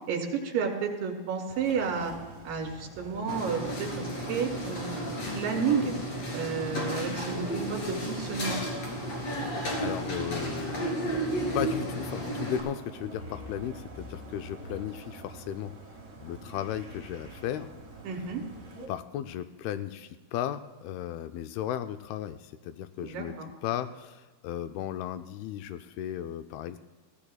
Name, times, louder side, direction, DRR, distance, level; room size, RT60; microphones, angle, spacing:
voice 1, 0.1-2.1 2.4-5.0 5.3-5.9 6.3-8.6 18.0-18.4 23.0-23.5, right 6 dB, 65° right, 1 dB, 3.5 m, -31 dB
sound 1, 1.5-18.9, right 1 dB, 45° right, 0.9 m, -47 dB
sound 2, 3.3-12.6, equal, 45° left, 3.4 m, -33 dB
voice 2, 9.8-10.9 11.5-15.7 16.2-17.7 18.9-23.4 23.6-26.8, left 11 dB, 80° left, 9 dB, 2.3 m, -35 dB
22.0 x 15.5 x 2.3 m, 1.3 s
omnidirectional pair, 4.7 m